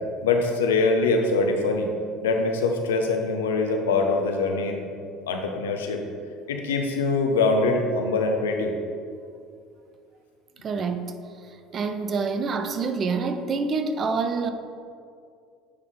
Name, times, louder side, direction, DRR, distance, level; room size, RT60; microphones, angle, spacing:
voice 1, 0.2-1.9 2.2-4.9 5.3-6.0 6.5-8.7, left 3 dB, 85° left, 3 dB, 0.7 m, -23 dB
voice 2, 10.6-11.2 11.7-14.5, right 4 dB, 40° right, 9 dB, 0.6 m, -26 dB
9.5 x 3.7 x 3.9 m, 2.3 s
hypercardioid pair, 70°, 0 cm